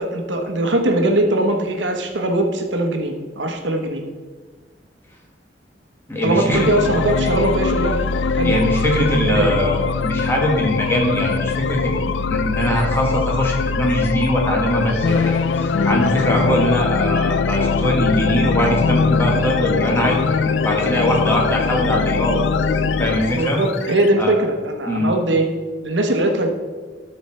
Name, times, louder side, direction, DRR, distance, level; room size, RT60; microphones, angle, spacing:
voice 1, 0.0-4.0 6.2-8.0 8.3-8.6 9.2-9.5 23.3-25.5 25.8-26.5, right 1 dB, 90° right, 4 dB, 1.1 m, -20 dB
voice 2, 6.1-6.7 8.4-20.4 20.6-22.4 23.0-23.6 24.2-24.3 24.9-25.1, equal, 15° left, -1 dB, 1.6 m, -21 dB
sound 1, 6.5-24.1, left 5 dB, 75° left, 0.4 m, -21 dB
12.5 x 4.6 x 4.3 m, 1.4 s
head